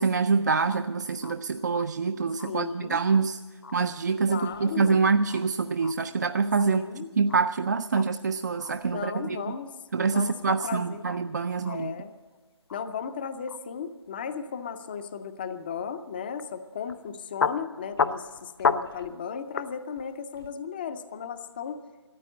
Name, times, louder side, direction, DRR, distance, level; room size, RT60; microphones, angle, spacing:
voice 1, 0.0-3.4 3.7-6.8 7.2-9.4 9.9-11.9, right 4 dB, 40° right, 10 dB, 0.4 m, -25 dB
sound 1, 0.7-0.8 1.2-1.3 1.7-1.8 2.4-2.5 3.1-3.2 3.6-3.8 4.4-5.9 6.3-6.9 7.3-7.6 7.9-8.0 8.5-9.4 10.1-10.8 11.0-11.2 11.5-11.9 12.7-12.8 13.5-13.6 16.4-16.5 16.9-17.1 17.4-17.6 17.9-19.1 19.6-19.7 20.0-20.5, left 5 dB, 55° left, 0.8 m, -32 dB
voice 2, 2.4-3.0 4.3-5.0 6.6-7.1 8.9-9.7 10.1-11.1 11.6-12.1 12.7-21.8, left 7 dB, 20° left, 11 dB, 0.5 m, -35 dB
14.0 x 8.9 x 9.8 m, 1.4 s
figure-of-eight pair, 160°, 15 cm